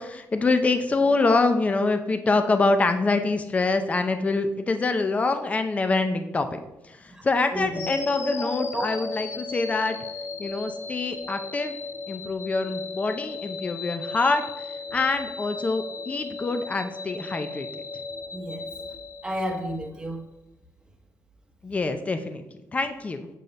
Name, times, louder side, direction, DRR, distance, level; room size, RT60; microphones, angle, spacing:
voice 1, 0.0-10.0 10.4-11.8 12.1-14.6 14.9-17.7 21.6-22.4 22.7-23.3, left 3 dB, 20° left, 8 dB, 0.5 m, -25 dB
voice 2, 7.5-7.9 8.2-8.9 11.2-11.4 18.3-18.7 19.2-20.3, equal, 15° right, 3 dB, 0.9 m, -32 dB
sound 1, 7.7-19.9, left 4 dB, 50° left, 0.8 m, -36 dB
7.6 x 6.4 x 2.6 m, 0.95 s
cardioid pair, 130°, 6 cm